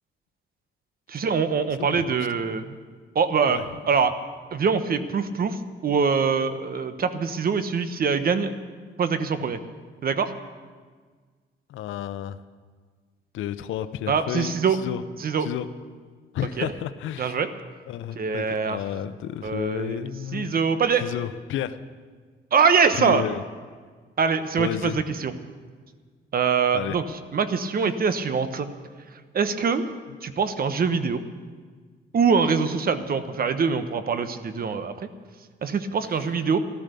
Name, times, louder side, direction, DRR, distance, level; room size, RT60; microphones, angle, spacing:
voice 1, 1.1-2.8 3.1-4.1 4.5-8.5 9.0-9.6 10.0-10.3 14.1-14.8 15.2-15.5 16.6-16.7 17.2-17.5 18.1-18.8 19.4-21.0 22.5-23.2 24.2-25.3 26.3-28.7 29.3-29.8 30.2-31.2 32.1-34.9 35.6-36.6, right 5 dB, 50° right, 10 dB, 1.1 m, -24 dB
voice 2, 11.7-12.4 13.3-15.0 15.4-15.7 16.3-17.4 17.9-20.5 21.0-21.8 22.9-23.4 24.6-25.0 26.7-27.0, left 11 dB, 80° left, 13 dB, 0.7 m, -31 dB
14.0 x 13.0 x 6.8 m, 1.5 s
cardioid pair, 90°, 20 cm